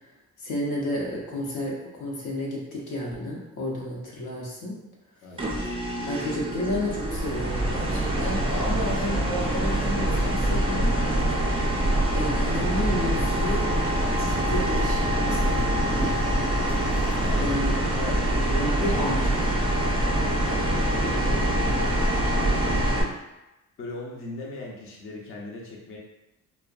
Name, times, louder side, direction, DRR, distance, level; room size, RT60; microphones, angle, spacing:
voice 1, 0.4-4.8 6.1-11.0 12.1-13.7 14.1-16.3 17.4-17.7 18.5-19.5, left 1 dB, 90° left, -4 dB, 0.8 m, -31 dB
voice 2, 5.2-5.5 17.0-18.8 20.4-21.7 22.4-22.9 23.8-26.0, left 2 dB, 45° left, -2 dB, 0.5 m, -39 dB
sound 1, 5.4-23.0, right 1 dB, 20° right, 0.4 m, -24 dB
sound 2, 12.1-17.5, right 1 dB, 10° left, 0.7 m, -42 dB
2.5 x 2.1 x 2.3 m, 0.98 s
cardioid pair, 90°, 30 cm